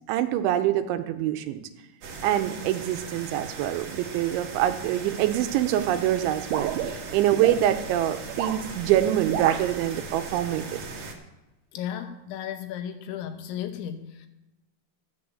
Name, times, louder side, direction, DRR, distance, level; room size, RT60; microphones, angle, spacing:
voice 1, 0.1-1.6 2.2-6.7 7.1-10.8, right 12 dB, 90° right, 8 dB, 3.1 m, -25 dB
sound 1, 2.0-11.1, right 4 dB, 55° right, 2.0 m, -39 dB
sound 2, 6.5-7.6 8.2-8.6 9.3-9.7, right 9 dB, 75° right, 2.5 m, -30 dB
voice 2, 11.7-14.3, left 9 dB, 80° left, 7 dB, 3.3 m, -34 dB
12.0 x 7.9 x 7.8 m, 1.0 s
omnidirectional pair, 5.4 m